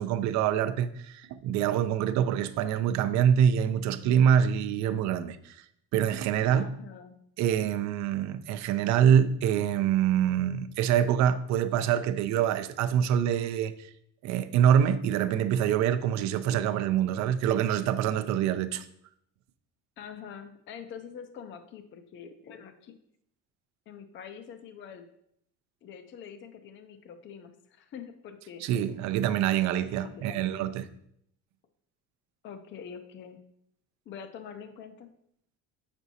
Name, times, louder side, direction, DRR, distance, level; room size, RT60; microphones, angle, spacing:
voice 1, 0.0-5.6 5.9-6.7 7.4-13.7 14.2-18.9 28.6-30.9, right 9 dB, 60° right, 0.5 m, -25 dB
voice 2, 6.5-7.2 20.0-22.9 23.9-25.0 25.8-28.6 29.8-30.4 32.4-33.4 34.1-35.1, left 7 dB, 35° left, 0.5 m, -45 dB
7.9 x 6.1 x 2.7 m
cardioid pair, 155°, 32 cm